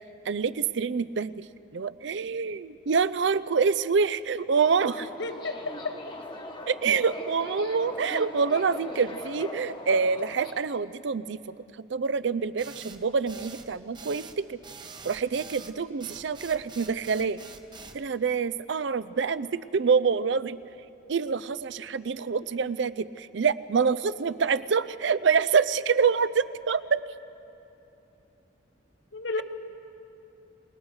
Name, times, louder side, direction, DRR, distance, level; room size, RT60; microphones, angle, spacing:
voice 1, 0.3-1.4 1.7-5.1 6.7-11.5 11.9-14.6 15.0-17.4 17.9-20.6 21.1-27.0, right 5 dB, 65° right, 16 dB, 0.5 m, -26 dB
Subway metro underground, 4.6-10.5, left 1 dB, 25° left, 1.2 m, -40 dB
voice 2, 5.0-5.9 29.1-29.4, left 3 dB, 60° left, 8 dB, 1.1 m, -33 dB
sound 1, 12.6-18.0, right 4 dB, 20° right, 0.8 m, -45 dB
28.5 x 20.0 x 4.8 m, 2.9 s
head